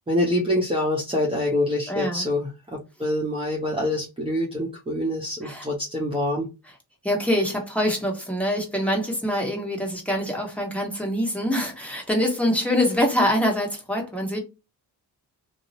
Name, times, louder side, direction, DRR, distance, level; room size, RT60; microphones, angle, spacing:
voice 1, 0.1-6.5, left 1 dB, 15° right, 0.8 m, -25 dB
voice 2, 1.9-2.3 5.4-5.6 7.0-14.4, equal, 5° left, 1.1 m, -24 dB
2.7 x 2.0 x 2.6 m
cardioid pair, 80°, 41 cm